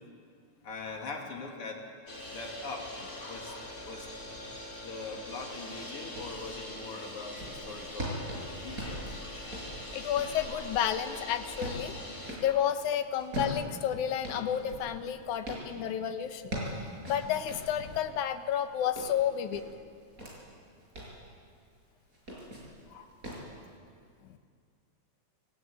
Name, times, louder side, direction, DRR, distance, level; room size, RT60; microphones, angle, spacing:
voice 1, 0.6-1.8 2.3-2.9 3.2-4.1 4.8-8.2 8.6-9.2 10.3-10.6 12.5-12.7 22.9-23.1, left 3 dB, 50° left, 0 dB, 3.5 m, -42 dB
sound 1, 2.1-12.3, left 1 dB, 15° left, 3.0 m, -43 dB
sound 2, 6.1-6.4 6.9-12.5 13.2-15.7 16.2-18.1 18.5-20.3 20.8-21.2 22.1-22.8 23.2-23.5, equal, 25° right, 6.5 m, -40 dB
voice 2, 9.9-11.9 12.4-16.5 16.8-19.6, left 9 dB, 80° left, 9 dB, 2.5 m, -31 dB
26.5 x 16.0 x 9.1 m, 2.2 s
omnidirectional pair, 3.4 m